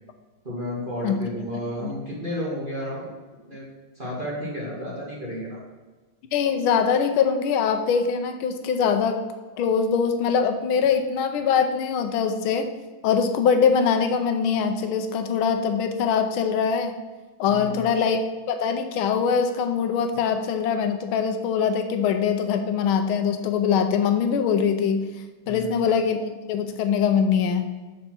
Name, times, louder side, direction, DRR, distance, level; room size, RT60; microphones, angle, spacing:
voice 1, 0.4-3.1 3.5-3.7 4.0-5.6 17.4-17.9 25.4-25.8, equal, 25° right, -5 dB, 1.8 m, -32 dB
voice 2, 6.3-9.2 9.6-12.7 13.0-16.9 17.4-18.2 18.5-25.0 25.5-27.7, left 6 dB, 85° left, 7 dB, 1.5 m, -23 dB
6.6 x 4.2 x 5.9 m, 1.3 s
omnidirectional pair, 2.2 m